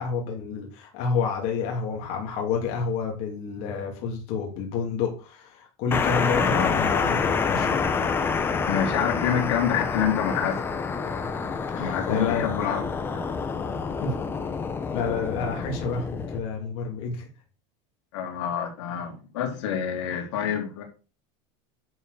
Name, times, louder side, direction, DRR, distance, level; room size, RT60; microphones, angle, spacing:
voice 1, 0.0-7.8 11.7-12.6 14.0-14.2 14.9-17.3 20.1-20.2, left 5 dB, 45° left, 3.0 m, -29 dB
sound 1, 5.9-16.4, left 5 dB, 15° left, 0.8 m, -27 dB
voice 2, 6.4-6.7 8.7-10.7 11.7-12.8 13.1-13.2 18.1-20.8, left 8 dB, 75° left, 3.4 m, -27 dB
11.0 x 4.8 x 6.8 m
supercardioid pair, 175°, 15 cm